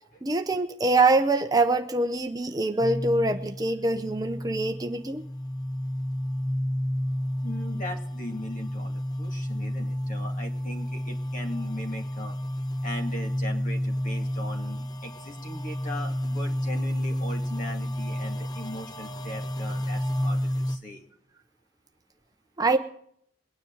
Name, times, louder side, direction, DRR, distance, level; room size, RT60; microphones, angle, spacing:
voice 1, 0.2-5.2 22.6-22.8, right 2 dB, 20° right, 7 dB, 0.7 m, -24 dB
sound 1, 2.8-20.8, equal, 20° left, 0.8 m, -31 dB
voice 2, 7.4-12.3 12.8-21.1, left 1 dB, 45° left, 2 dB, 2.3 m, -39 dB
22.5 x 9.7 x 3.9 m, 0.68 s
head